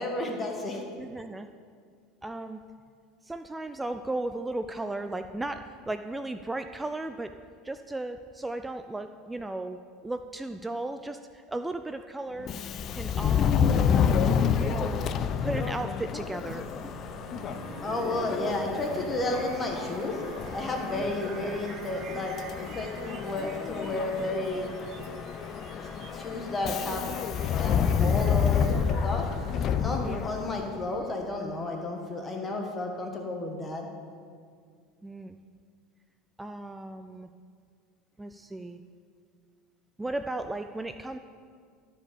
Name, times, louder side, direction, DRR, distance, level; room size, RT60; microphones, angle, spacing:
voice 1, 0.0-0.8 17.8-20.2 20.5-24.7 25.9-27.0 27.6-29.3 29.7-33.9, left 2 dB, 20° left, 2 dB, 1.5 m, -32 dB
voice 2, 1.0-1.5 2.2-2.6 3.2-7.3 7.6-12.5 12.9-13.9 14.5-15.1 15.4-17.0 20.8-21.1 29.9-30.4 35.0-35.4 36.4-37.3 38.2-38.8 40.0-41.2, right 2 dB, 10° right, 9 dB, 0.4 m, -36 dB
Subway metro underground, 12.4-30.8, left 7 dB, 40° left, 0.5 m, -29 dB
sound 1, 16.5-32.4, right 7 dB, 50° right, 0.7 m, -46 dB
13.0 x 5.4 x 6.9 m, 2.1 s
supercardioid pair, 110°, 0 cm